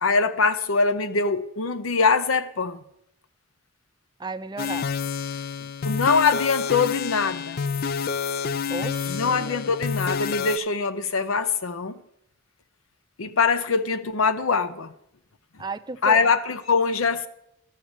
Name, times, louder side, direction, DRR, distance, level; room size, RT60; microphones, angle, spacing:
voice 1, 0.0-2.8 5.8-7.6 9.1-12.0 13.2-14.9 16.0-17.3, left 4 dB, 85° left, 0.7 m, -23 dB
voice 2, 4.2-4.9 8.7-9.6 15.6-16.2, right 3 dB, 20° right, 0.4 m, -34 dB
sound 1, 4.6-10.6, left 6 dB, 45° left, 0.3 m, -28 dB
12.5 x 6.6 x 7.2 m
head